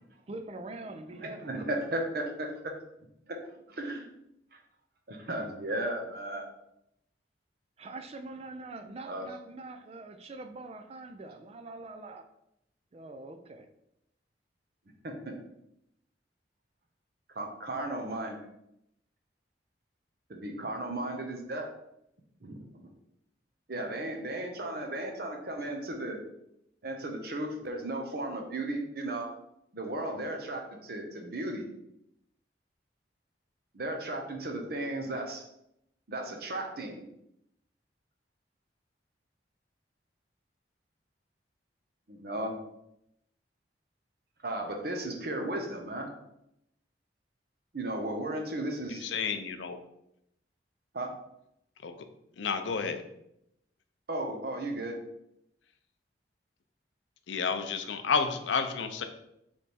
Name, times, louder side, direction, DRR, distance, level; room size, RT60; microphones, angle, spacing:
voice 1, 0.3-1.6 7.8-12.3 12.9-13.7, right 2 dB, 35° right, 8 dB, 0.4 m, -43 dB
voice 2, 1.1-2.5 3.3-3.4 3.7-4.1 5.1-6.5 9.0-9.3 15.0-15.3 17.3-18.4 20.3-21.7 22.4-22.9 23.7-26.2 26.8-29.3 29.7-31.7 33.7-35.4 36.1-37.1 42.1-42.6 44.4-46.1 47.7-49.1 50.9-51.1 54.1-54.9, right 1 dB, 55° right, 2 dB, 0.7 m, -35 dB
voice 3, 49.0-49.8 51.8-51.9 52.4-53.0 57.3-59.0, left 5 dB, 90° left, 8 dB, 0.5 m, -30 dB
3.4 x 3.1 x 4.1 m, 0.80 s
head